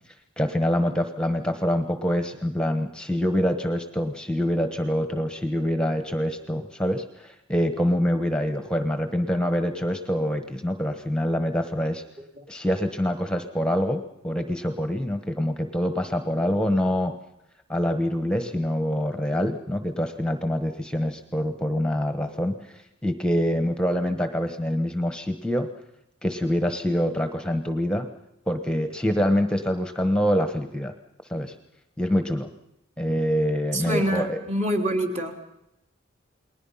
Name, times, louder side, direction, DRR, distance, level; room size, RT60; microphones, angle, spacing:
voice 1, 0.4-12.0 12.5-17.2 17.7-25.7 26.2-28.1 28.5-30.9 31.3-31.5 32.0-32.5 33.0-34.4, equal, 5° left, 7 dB, 1.1 m, -25 dB
voice 2, 33.7-35.3, equal, 35° right, 3 dB, 3.4 m, -26 dB
29.5 x 20.5 x 5.7 m, 0.82 s
head